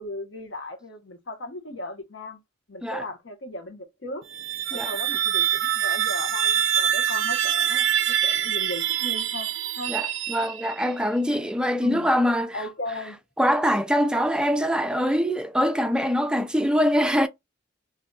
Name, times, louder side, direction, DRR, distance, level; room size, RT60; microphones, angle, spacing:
voice 1, 0.0-2.4 2.7-4.2 4.7-10.0 11.8-12.1 12.5-13.2, left 2 dB, 65° left, 1.0 m, -36 dB
sound 1, 4.2-10.9, right 10 dB, 70° right, 0.4 m, -25 dB
voice 2, 9.9-12.6 13.4-17.3, equal, 5° right, 0.3 m, -23 dB
3.9 x 2.6 x 2.2 m
head